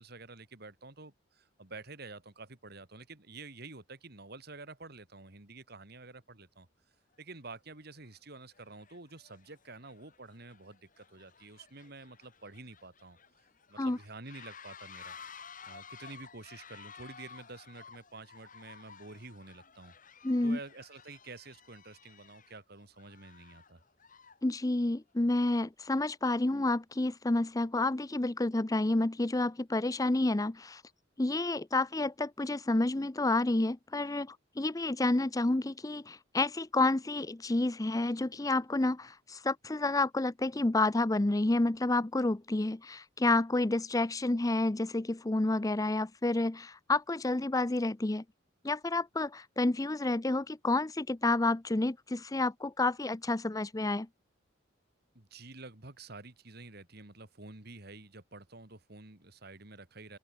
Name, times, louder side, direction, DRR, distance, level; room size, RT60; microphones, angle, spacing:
voice 1, 0.0-6.7 7.2-13.2 13.7-15.1 15.7-19.9 20.4-23.8 55.1-60.2, right 3 dB, 55° right, 2.6 m, -49 dB
sound 1, 7.1-7.2 7.9-8.2 8.5-24.5, left 6 dB, 45° left, 5.0 m, -54 dB
voice 2, 20.2-20.6 24.4-30.8 31.2-48.2 48.6-54.1, left 2 dB, 20° left, 0.6 m, -29 dB
open air
head